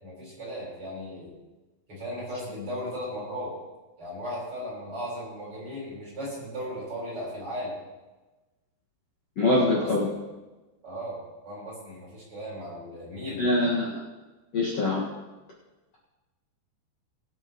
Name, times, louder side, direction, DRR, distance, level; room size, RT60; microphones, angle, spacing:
voice 1, 0.0-1.4 1.9-3.5 4.0-7.8 9.5-10.1 10.8-13.5, equal, 35° right, -7 dB, 5.2 m, -36 dB
voice 2, 9.4-10.1 13.4-14.0 14.5-15.0, left 2 dB, 50° left, -6 dB, 2.3 m, -24 dB
22.5 x 8.4 x 3.1 m, 1.2 s
omnidirectional pair, 4.7 m